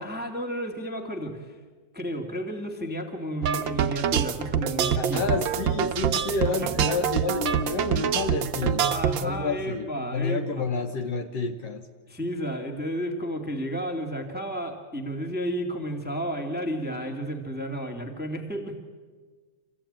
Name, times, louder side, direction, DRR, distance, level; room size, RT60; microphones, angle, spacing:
voice 1, 0.0-1.5 1.9-5.2 6.6-6.9 7.9-8.1 8.9-10.7 12.1-18.8, equal, 5° right, 3 dB, 1.7 m, -32 dB
sound 1, 3.4-9.2, right 8 dB, 80° right, 1.0 m, -25 dB
voice 2, 5.0-8.9 9.2-11.9, left 3 dB, 65° left, 6 dB, 2.0 m, -29 dB
26.0 x 16.5 x 8.9 m, 1.4 s
omnidirectional pair, 3.4 m